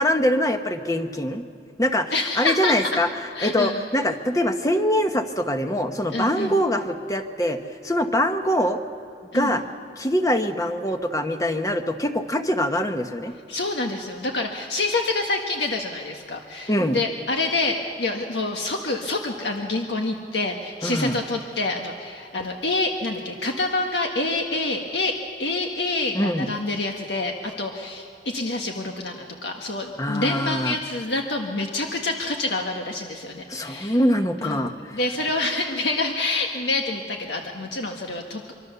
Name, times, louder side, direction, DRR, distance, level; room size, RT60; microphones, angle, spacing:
voice 1, 0.0-1.4 1.8-3.1 3.4-7.6 7.8-8.8 9.3-9.6 10.0-13.3 16.7-17.0 20.8-21.2 26.1-26.5 30.0-30.8 33.5-35.0, equal, 20° left, 6 dB, 1.1 m, -23 dB
voice 2, 2.1-3.0 3.3-3.9 6.1-6.6 9.3-9.6 13.5-34.0 34.4-38.5, left 2 dB, 80° left, 2 dB, 1.6 m, -27 dB
25.0 x 24.5 x 6.9 m, 2.7 s
head